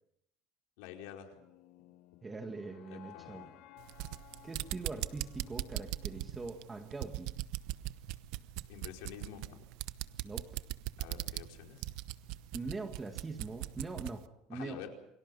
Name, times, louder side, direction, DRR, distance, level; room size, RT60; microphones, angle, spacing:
voice 1, 0.8-1.4 2.9-3.5 8.7-9.6 11.0-11.9 14.5-14.9, left 10 dB, 80° left, 2 dB, 4.8 m, -48 dB
sound 1, 1.3-7.4, left 15 dB, 60° left, 1.5 m, -58 dB
voice 2, 2.2-3.5 4.4-7.3 10.2-10.5 12.5-14.9, right 3 dB, 15° right, 5 dB, 1.8 m, -42 dB
sound 2, 3.8-14.2, right 17 dB, 70° right, 0.9 m, -40 dB
28.5 x 24.5 x 5.5 m, 0.77 s
cardioid pair, 150°, 0 cm